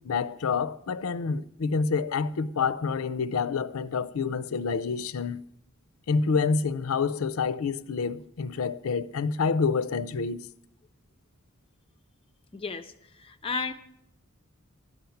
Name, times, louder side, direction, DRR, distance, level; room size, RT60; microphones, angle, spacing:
voice 1, 0.0-5.4 6.1-10.4, left 5 dB, 80° left, 0.5 m, -28 dB
voice 2, 12.5-13.7, left 4 dB, 25° left, 0.5 m, -34 dB
12.0 x 5.8 x 9.2 m
head